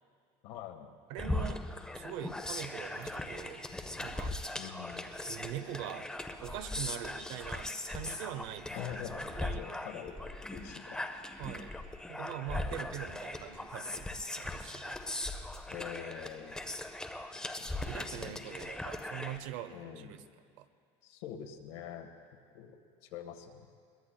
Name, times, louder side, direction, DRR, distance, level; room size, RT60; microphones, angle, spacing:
voice 1, 0.4-0.9 4.6-5.1 8.7-10.1 10.5-11.0 12.6-12.8 15.7-16.6 17.6-17.7 18.1-18.7 19.7-20.2 21.0-22.1 22.5-22.8 23.0-23.7, left 9 dB, 80° left, 5 dB, 1.4 m, -45 dB
voice 2, 1.1-1.6 1.9-3.6 4.0-4.3 5.2-6.1 6.4-8.7 9.3-9.6 11.4-11.8 12.1-15.0 17.2-17.3 17.9-20.2 20.6-20.7, right 11 dB, 90° right, 11 dB, 0.8 m, -43 dB
sound 1, 1.2-19.4, left 2 dB, 5° left, 0.6 m, -39 dB
22.0 x 21.0 x 2.2 m, 2.2 s
cardioid pair, 155°, 15 cm